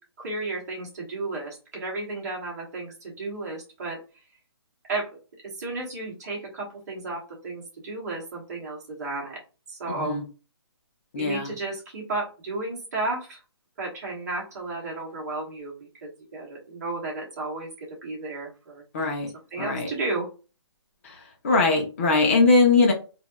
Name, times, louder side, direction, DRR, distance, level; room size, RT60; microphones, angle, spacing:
voice 1, 0.2-4.0 4.9-5.1 5.4-9.4 9.7-10.2 11.1-13.4 13.8-15.8 16.0-18.8 19.5-20.3, right 2 dB, 35° right, -2 dB, 1.3 m, -33 dB
voice 2, 11.1-11.5 18.9-19.3 19.6-19.9 21.0-21.1 21.4-22.9, left 3 dB, 25° left, 0 dB, 0.8 m, -21 dB
3.2 x 2.7 x 2.3 m, 0.34 s
hypercardioid pair, 175°, 15 cm